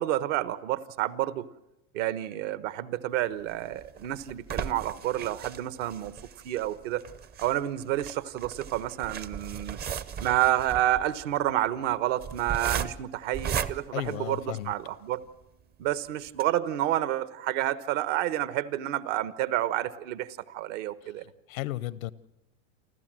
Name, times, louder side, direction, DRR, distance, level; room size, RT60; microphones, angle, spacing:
voice 1, 0.0-1.5 1.9-6.1 6.4-7.0 7.4-9.8 10.2-15.2 15.8-21.2, right 13 dB, 60° right, 15 dB, 1.2 m, -29 dB
sound 1, 3.5-14.9 15.4-15.5 15.8-15.9 16.3-16.4, right 8 dB, 25° right, 0.7 m, -37 dB
voice 2, 13.9-14.7 21.0-21.1 21.5-22.1, left 15 dB, 75° left, 19 dB, 0.9 m, -34 dB
29.5 x 12.0 x 7.6 m, 0.89 s
supercardioid pair, 125°, 41 cm